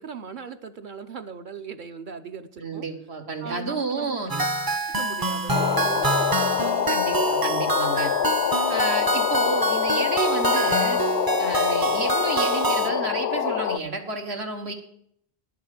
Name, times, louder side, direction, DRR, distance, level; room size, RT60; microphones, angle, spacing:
voice 1, 0.0-2.9 3.4-4.5 4.9-6.4, right 6 dB, 55° right, 9 dB, 0.9 m, -38 dB
voice 2, 2.6-4.3 6.9-8.1 8.7-11.0 11.4-14.7, right 3 dB, 85° right, 3 dB, 1.9 m, -30 dB
sound 1, 4.3-12.9, right 2 dB, 25° right, 0.5 m, -26 dB
sound 2, 5.5-13.8, left 9 dB, 85° left, 0.9 m, -25 dB
11.0 x 7.2 x 7.6 m, 0.71 s
omnidirectional pair, 1.1 m